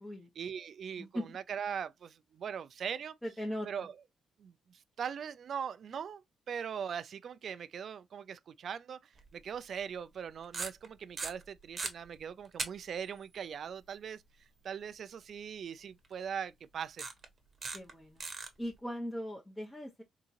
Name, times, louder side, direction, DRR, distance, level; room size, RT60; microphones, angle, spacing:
voice 1, 0.4-3.1 3.6-4.0 4.4-17.1, right 7 dB, 60° right, 0.3 m, -41 dB
voice 2, 1.0-1.4 3.2-3.9 17.7-18.2 18.6-20.0, equal, 10° left, 0.8 m, -39 dB
sound 1, 9.2-9.3 10.4-10.9 11.2-11.9 12.6-12.7 13.0-13.1 16.0-16.1 17.0-17.2 17.6-17.9 18.2-18.5, right 4 dB, 35° right, 0.9 m, -37 dB
3.7 x 2.9 x 2.5 m
cardioid pair, 115°, 0 cm